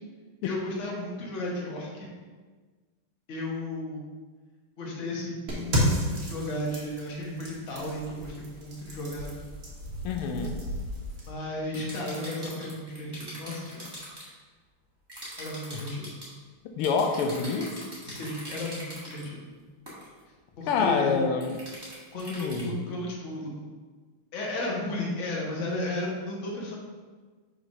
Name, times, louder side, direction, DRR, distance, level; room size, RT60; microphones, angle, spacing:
voice 1, 0.4-2.1 3.3-4.0 4.8-9.3 11.3-13.9 15.4-16.1 18.0-19.4 20.6-21.1 22.1-23.5 24.3-26.8, left 1 dB, 40° left, -3 dB, 1.2 m, -34 dB
sound 1, 5.5-11.3, equal, 40° right, 1.4 m, -32 dB
voice 2, 10.0-10.6 15.7-15.8 16.8-17.7 20.7-21.5 22.3-22.8, left 5 dB, 85° left, 4 dB, 1.5 m, -27 dB
sound 2, 11.7-14.3 15.1-16.3 16.8-19.3 19.9-20.1 21.4-22.6, equal, 15° right, 1.1 m, -42 dB
5.0 x 3.7 x 5.3 m, 1.4 s
omnidirectional pair, 2.4 m